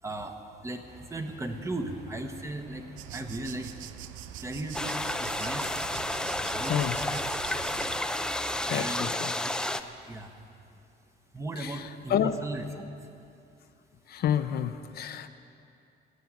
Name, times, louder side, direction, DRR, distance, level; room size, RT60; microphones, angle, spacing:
voice 1, 0.0-3.7 4.4-5.8 6.5-7.8 8.1-9.1 9.4-9.6 10.1-10.3 11.3-13.1, right 2 dB, 15° right, 5 dB, 1.0 m, -37 dB
sound 1, 0.8-8.8, right 2 dB, 45° right, 2.8 m, -52 dB
sound 2, 3.0-8.0, right 14 dB, 85° right, 0.5 m, -43 dB
sound 3, 4.7-9.8, left 1 dB, 5° left, 0.4 m, -31 dB
voice 2, 8.7-9.3 11.6-12.3 14.1-15.3, left 9 dB, 55° left, 9 dB, 0.6 m, -29 dB
16.0 x 8.6 x 9.5 m, 2.6 s
cardioid pair, 155°, 19 cm